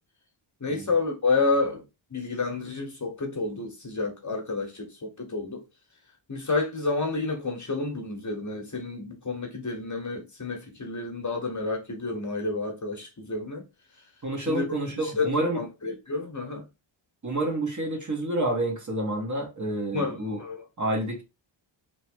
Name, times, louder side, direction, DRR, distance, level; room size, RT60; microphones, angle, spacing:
voice 1, 0.6-1.8 2.1-5.6 6.3-13.6 14.4-14.6 15.0-16.6 19.9-20.6, left 3 dB, 35° left, 1.1 m, -30 dB
voice 2, 14.2-15.6 17.2-20.4 20.8-21.2, right 1 dB, 35° right, 1.5 m, -28 dB
3.1 x 3.0 x 4.5 m
wide cardioid pair, 140°, 49 cm